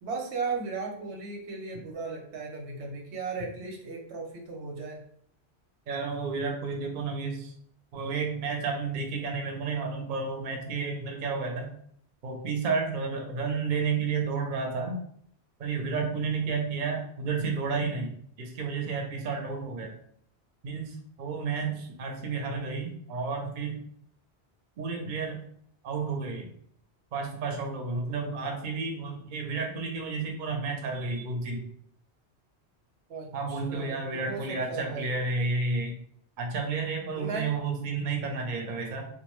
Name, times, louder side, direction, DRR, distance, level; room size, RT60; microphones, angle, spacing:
voice 1, 0.0-5.0 33.1-35.1 37.2-37.5, right 4 dB, 85° right, 1 dB, 0.9 m, -36 dB
voice 2, 5.9-7.5 7.9-11.7 12.2-15.0 15.6-20.0 20.6-23.8 24.8-25.4 25.8-26.5 27.1-31.7 33.3-36.0 36.4-39.0, right 4 dB, 55° right, 2 dB, 0.6 m, -31 dB
2.5 x 2.2 x 2.9 m, 0.64 s
omnidirectional pair, 1.1 m